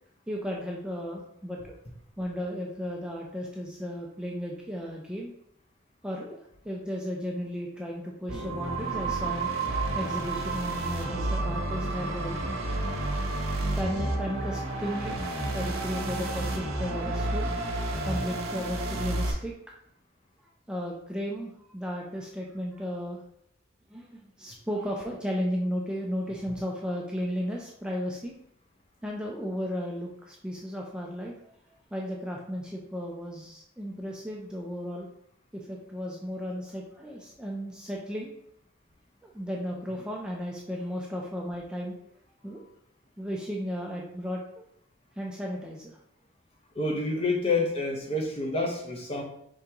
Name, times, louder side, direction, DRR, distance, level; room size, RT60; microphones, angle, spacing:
voice 1, 0.3-1.7 2.2-5.3 6.0-6.4 6.6-12.4 13.8-15.2 15.5-19.5 20.7-23.2 23.9-28.3 29.0-31.6 31.9-35.1 35.5-38.3 39.2-42.0 42.4-42.6 43.2-44.4 45.2-46.0, equal, 5° right, -2 dB, 0.4 m, -34 dB
sound 1, 8.3-19.3, right 2 dB, 90° right, 0.9 m, -30 dB
voice 2, 46.7-49.2, left 2 dB, 30° left, 1 dB, 0.7 m, -28 dB
5.0 x 3.4 x 2.9 m, 0.73 s
head